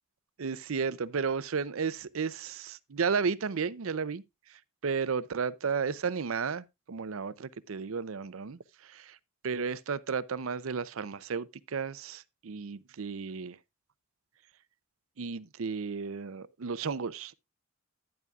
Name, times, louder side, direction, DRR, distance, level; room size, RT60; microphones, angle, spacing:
voice 1, 0.4-4.2 4.8-9.2 9.4-13.6 15.2-17.3, right 5 dB, 80° right, 0.6 m, -33 dB
11.0 x 10.5 x 2.4 m
head